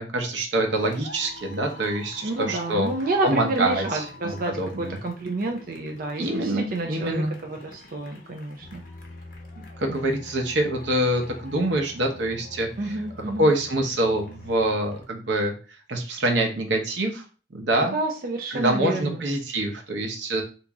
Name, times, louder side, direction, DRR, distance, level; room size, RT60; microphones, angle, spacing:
voice 1, 0.0-2.9 3.2-5.0 6.2-7.3 9.8-12.7 13.4-15.5 15.9-17.2 17.5-18.0 18.5-20.4, right 1 dB, 90° right, 3 dB, 0.8 m, -25 dB
sound 1, 0.7-15.0, left 2 dB, 50° left, 0.8 m, -45 dB
voice 2, 2.2-8.8 9.9-10.2 12.8-13.5 17.9-19.3, right 2 dB, 50° right, 2 dB, 0.5 m, -29 dB
3.0 x 2.6 x 3.4 m, 0.36 s
head